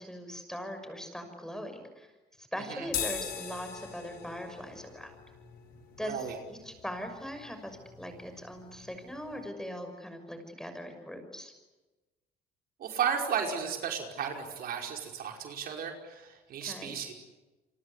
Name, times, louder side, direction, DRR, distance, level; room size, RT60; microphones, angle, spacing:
voice 1, 0.0-2.1 2.4-5.1 6.0-11.5 16.6-16.9, equal, 5° left, 7 dB, 6.2 m, -40 dB
sound 1, 2.9-9.4, left 8 dB, 65° left, 6.4 m, -42 dB
voice 2, 6.0-6.4 12.8-17.1, right 7 dB, 60° right, 3 dB, 5.2 m, -34 dB
29.5 x 24.5 x 8.3 m, 1.2 s
cardioid pair, 110°, 17 cm